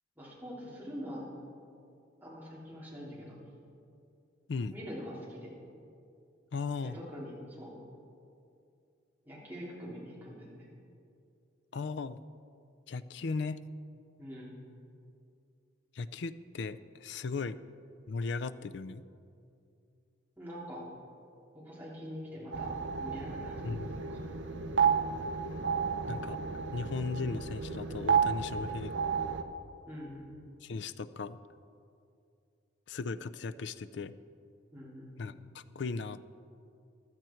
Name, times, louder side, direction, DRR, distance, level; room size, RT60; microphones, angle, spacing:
voice 1, 0.2-1.2 2.2-3.3 4.7-5.5 6.8-7.7 9.2-10.7 14.2-14.5 20.4-20.8 21.5-22.7 23.0-24.2 29.9-30.3 34.7-35.4, equal, 10° right, -7 dB, 3.2 m, -44 dB
voice 2, 6.5-7.0 11.7-12.2 12.9-13.6 15.9-17.6 18.1-19.0 23.6-24.0 26.1-26.4 26.7-28.9 30.6-31.4 32.9-34.1 35.2-36.2, left 4 dB, 60° left, 13 dB, 0.4 m, -37 dB
sound 1, 22.5-29.4, right 6 dB, 65° right, 0.7 m, -32 dB
15.5 x 12.0 x 4.5 m, 2.5 s
head